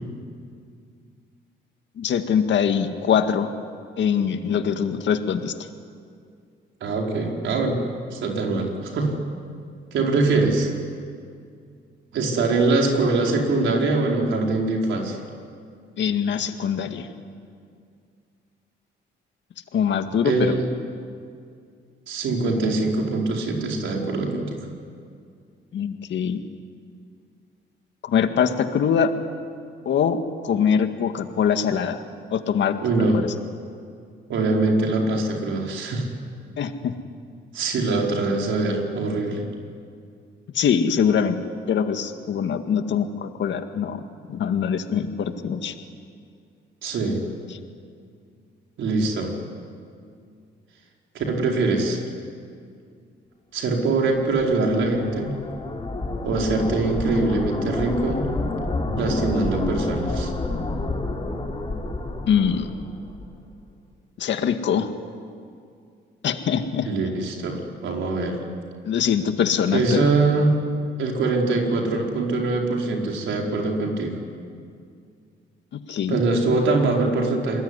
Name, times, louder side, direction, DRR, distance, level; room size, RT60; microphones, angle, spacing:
voice 1, 2.0-3.5 4.0-5.5 16.0-17.1 19.7-20.5 25.7-26.4 28.0-29.1 29.9-30.2 30.4-32.0 32.3-32.7 33.1-33.3 36.6-36.9 40.5-44.0 44.3-45.7 62.3-62.8 64.2-64.9 66.2-66.9 68.9-70.1 75.7-76.2, left 7 dB, 65° left, 7 dB, 2.0 m, -23 dB
voice 2, 6.8-7.8 8.1-9.1 9.9-10.7 12.1-15.2 20.2-20.7 22.1-24.6 32.8-33.2 34.3-36.1 37.5-39.4 46.8-47.2 48.8-49.3 51.1-52.0 53.5-55.3 56.2-58.3 59.0-60.3 66.8-68.4 69.7-70.6 71.0-74.2 76.1-77.6, right 3 dB, 75° right, 0 dB, 4.8 m, -23 dB
sound 1, 54.1-63.4, left 2 dB, 25° left, 4.1 m, -29 dB
27.5 x 21.0 x 9.8 m, 2.3 s
cardioid pair, 90°, 20 cm